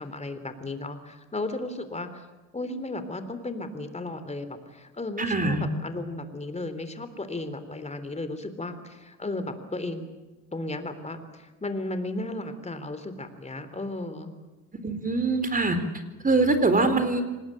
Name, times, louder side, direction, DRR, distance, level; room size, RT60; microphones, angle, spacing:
voice 1, 0.0-2.2 2.5-10.0 10.5-14.4, left 2 dB, 20° left, 10 dB, 3.6 m, -35 dB
voice 2, 5.2-5.7 14.8-15.8 16.2-17.2, right 3 dB, 25° right, 10 dB, 4.1 m, -23 dB
25.5 x 20.0 x 9.0 m, 1.1 s
cardioid pair, 90°, 30 cm